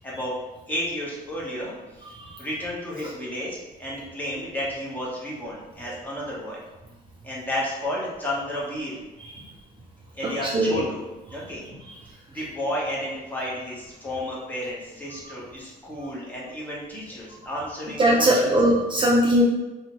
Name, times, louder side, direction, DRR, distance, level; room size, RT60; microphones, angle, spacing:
voice 1, 0.0-0.3 0.7-1.7 2.4-6.6 7.2-9.0 10.1-11.0 11.3-11.7 12.3-18.5, left 1 dB, 10° left, -6 dB, 0.9 m, -32 dB
voice 2, 10.4-10.8 11.3-11.4 18.0-19.4, right 1 dB, 30° right, -3 dB, 0.4 m, -20 dB
2.7 x 2.1 x 2.9 m, 1.1 s
cardioid pair, 110°, 17 cm